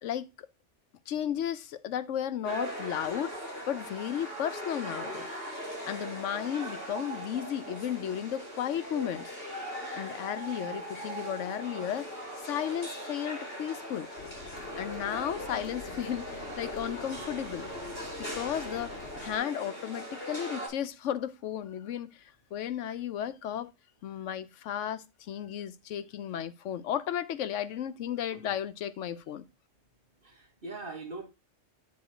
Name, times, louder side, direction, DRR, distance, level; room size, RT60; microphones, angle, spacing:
voice 1, 0.0-0.5 1.1-3.4 3.7-5.3 5.8-9.3 10.0-12.1 12.4-14.1 14.8-17.7 18.2-23.7 24.0-29.5, left 10 dB, 85° left, 1.0 m, -34 dB
sound 1, 2.4-20.7, equal, 55° left, 4.4 m, -40 dB
sound 2, 14.2-19.4, left 4 dB, 70° left, 1.3 m, -45 dB
voice 2, 30.2-31.3, right 3 dB, 50° right, 1.8 m, -42 dB
9.4 x 3.8 x 4.9 m
omnidirectional pair, 1.2 m